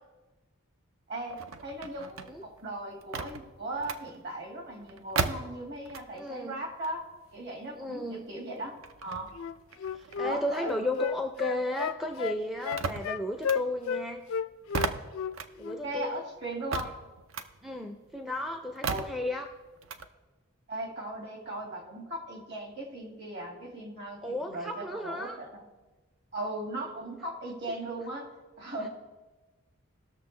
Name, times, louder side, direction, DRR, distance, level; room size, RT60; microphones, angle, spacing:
voice 1, 1.1-7.0 7.3-8.7 9.0-9.3 10.2-10.8 15.8-16.9 18.9-19.1 20.7-25.6 26.3-28.3 28.6-28.9, right 1 dB, 50° right, 1 dB, 2.0 m, -38 dB
sound 1, 1.2-6.4 6.7-11.5 11.8-20.1, right 4 dB, 70° right, 0.6 m, -38 dB
voice 2, 6.1-6.6 7.8-8.2 9.9-14.2 15.6-16.2 17.6-19.5 24.2-25.4, left 1 dB, ahead, 4 dB, 0.4 m, -34 dB
Wind instrument woodwind instrument, 9.3-14.0 14.3-15.4 15.6-15.8, left 7 dB, 70° left, 0.4 m, -32 dB
18.5 x 6.6 x 3.2 m, 1.2 s
head